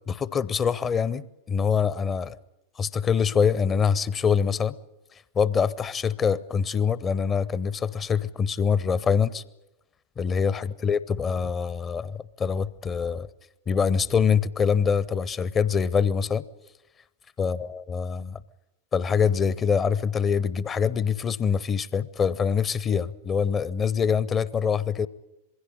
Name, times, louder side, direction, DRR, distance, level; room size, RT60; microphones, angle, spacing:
voice 1, 0.1-2.4 2.8-4.7 5.4-9.4 10.2-13.3 13.7-16.4 17.4-18.4 18.9-25.1, left 6 dB, 25° left, 0.7 m, -24 dB
21.5 x 16.0 x 9.8 m
figure-of-eight pair, 90°, 0 cm